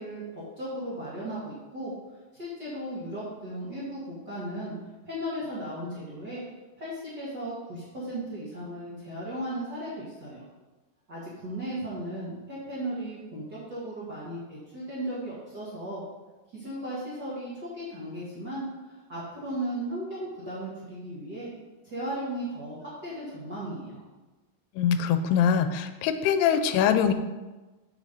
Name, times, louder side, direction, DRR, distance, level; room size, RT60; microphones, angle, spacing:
voice 1, 0.0-1.9 2.4-4.0 4.2-4.7 5.0-6.4 6.8-10.4 11.1-16.0 16.5-21.5 21.8-24.0, right 1 dB, 40° right, -9 dB, 1.6 m, -36 dB
voice 2, 24.8-27.1, left 8 dB, 85° left, 9 dB, 2.6 m, -23 dB
7.3 x 6.0 x 5.2 m, 1.2 s
omnidirectional pair, 4.6 m